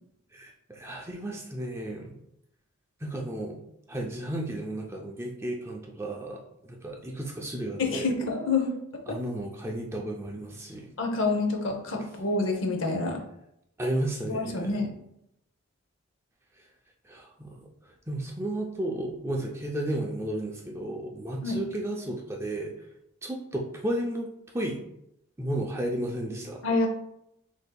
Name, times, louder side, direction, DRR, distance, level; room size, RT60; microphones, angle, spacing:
voice 1, 0.3-2.1 3.0-3.6 3.9-8.1 9.1-10.9 13.8-14.8 17.1-17.6 18.1-22.7 23.2-24.3 24.5-24.8 25.4-26.6, right 1 dB, 10° right, 0 dB, 0.4 m, -33 dB
voice 2, 7.8-8.8 9.1-9.2 11.0-13.2 14.3-14.9 21.4-21.7 26.6-26.9, left 3 dB, 65° left, 3 dB, 0.7 m, -27 dB
6.5 x 2.7 x 2.2 m, 0.79 s
head